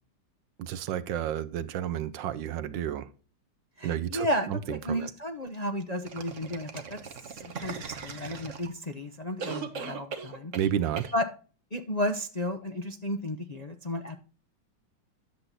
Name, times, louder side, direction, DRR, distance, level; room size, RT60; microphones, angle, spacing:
voice 1, 0.6-3.1 3.8-5.1 10.5-11.1, right 10 dB, 80° right, 1.5 m, -31 dB
voice 2, 3.8-7.0 7.3-10.5 11.1-11.2 11.7-14.2, left 1 dB, 35° left, 0.6 m, -33 dB
sound 1, 6.0-8.9 9.4-10.7 11.0-11.1, right 6 dB, 45° right, 1.5 m, -39 dB
10.5 x 7.7 x 4.1 m
omnidirectional pair, 2.0 m